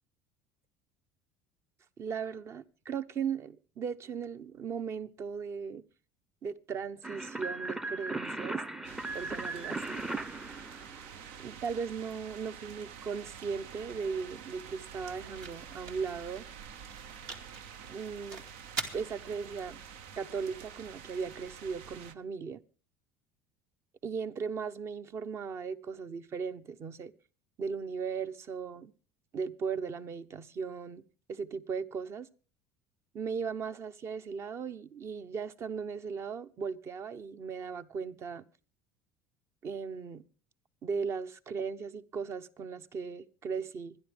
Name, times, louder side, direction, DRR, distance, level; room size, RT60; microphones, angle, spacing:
voice 1, 2.0-5.8 6.4-8.6 9.1-10.1 11.4-16.5 17.9-18.4 18.9-19.8 20.2-22.6 24.0-27.1 27.6-28.9 29.3-31.0 31.3-32.3 33.1-38.4 39.6-40.2 40.8-44.0, right 6 dB, 45° right, 0.9 m, -37 dB
sound 1, 7.0-11.5, right 2 dB, 10° right, 0.6 m, -37 dB
sound 2, 8.8-22.1, right 7 dB, 80° right, 0.8 m, -48 dB
sound 3, 14.0-21.9, right 4 dB, 60° right, 2.3 m, -46 dB
25.0 x 10.5 x 3.5 m
supercardioid pair, 90°, 7 cm